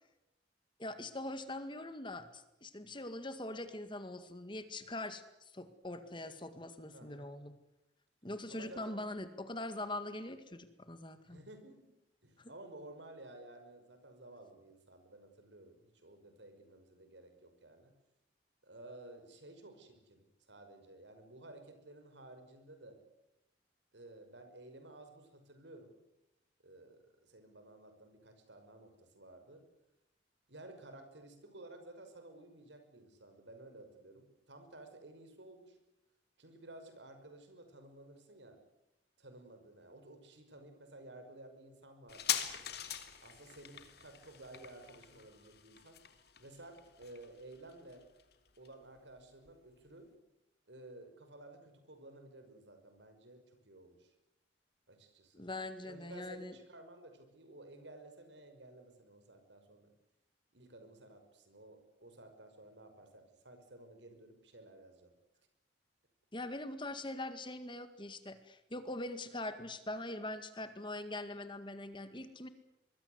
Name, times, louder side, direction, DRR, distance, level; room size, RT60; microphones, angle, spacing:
voice 1, 0.8-5.2 5.5-7.5 8.2-11.4 12.4-12.5 55.3-56.6 66.3-72.5, left 1 dB, 25° left, 10 dB, 2.0 m, -42 dB
voice 2, 6.9-7.3 8.5-9.0 11.2-11.9 12.2-17.9 18.6-23.0 23.9-25.9 26.6-29.6 30.5-35.8 36.4-38.6 39.2-42.4 43.2-46.0 46.4-48.0 48.6-50.1 50.7-54.1 54.9-55.4 55.8-59.9 60.5-65.1, right 2 dB, 85° right, 7 dB, 5.9 m, -54 dB
sound 1, 42.1-49.2 49.5-49.6, left 10 dB, 60° left, 2.6 m, -42 dB
25.0 x 22.0 x 8.1 m, 0.91 s
head